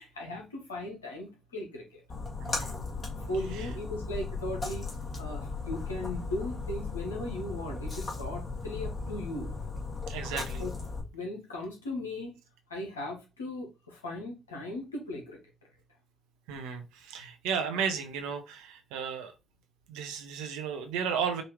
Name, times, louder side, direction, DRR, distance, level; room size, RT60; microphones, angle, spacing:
voice 1, 0.0-2.0 3.3-4.9 5.2-9.6 10.6-10.7 11.1-12.3 12.7-15.4, left 1 dB, 85° left, 1.1 m, -38 dB
Splash splatter, 2.1-11.0, left 3 dB, 45° left, 2.0 m, -36 dB
voice 2, 2.4-2.8 3.6-3.7 10.1-10.6 16.5-19.3 19.9-21.4, right 7 dB, 75° right, 0.8 m, -34 dB
5.2 x 2.8 x 3.1 m
figure-of-eight pair, 40°, 0 cm